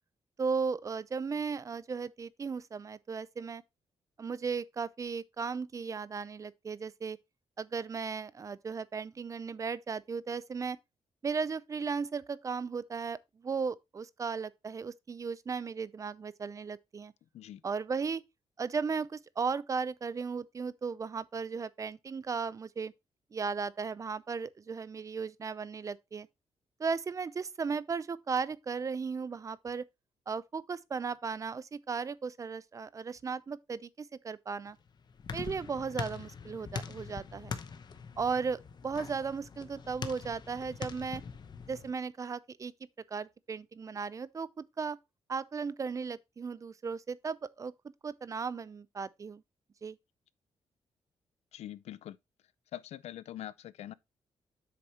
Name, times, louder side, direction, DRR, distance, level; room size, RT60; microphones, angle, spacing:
voice 1, 0.4-3.6 4.2-7.2 7.6-10.8 11.2-17.1 17.6-18.2 18.6-22.9 23.3-26.3 26.8-29.9 30.3-34.8 35.3-37.5 38.2-41.2 41.7-42.7 43.1-45.0 45.3-47.7 48.0-49.4 49.8-50.0, right 5 dB, 30° right, 0.4 m, -36 dB
sound 1, 34.7-41.9, left 5 dB, 40° left, 0.9 m, -43 dB
voice 2, 51.5-52.2 52.7-53.9, left 12 dB, 85° left, 0.5 m, -43 dB
7.9 x 6.6 x 2.9 m
wide cardioid pair, 140°, 11 cm